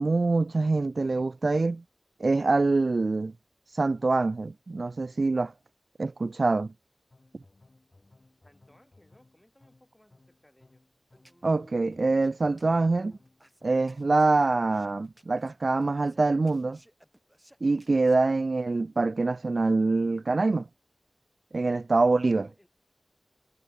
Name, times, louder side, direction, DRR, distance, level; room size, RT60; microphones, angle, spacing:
voice 1, 0.0-1.8 2.2-3.3 3.7-5.5 6.0-6.7 11.4-13.1 13.6-16.8 17.6-20.7 21.5-22.5, right 3 dB, 65° right, 0.4 m, -25 dB
sound 1, 7.1-15.0, left 2 dB, 45° left, 3.4 m, -61 dB
voice 2, 8.4-10.8 22.4-22.7, left 1 dB, 15° left, 7.6 m, -62 dB
sound 2, 11.1-18.2, equal, 10° right, 5.3 m, -59 dB
wide cardioid pair, 60°, 0 cm